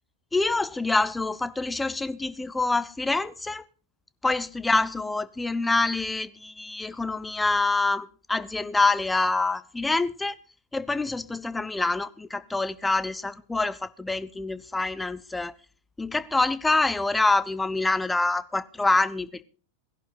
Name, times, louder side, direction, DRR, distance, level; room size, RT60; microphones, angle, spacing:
voice 1, 0.3-3.6 4.2-10.4 10.7-15.5 16.0-19.4, left 3 dB, 10° left, 0.6 m, -26 dB
17.0 x 11.0 x 4.0 m
figure-of-eight pair, 90°, 0 cm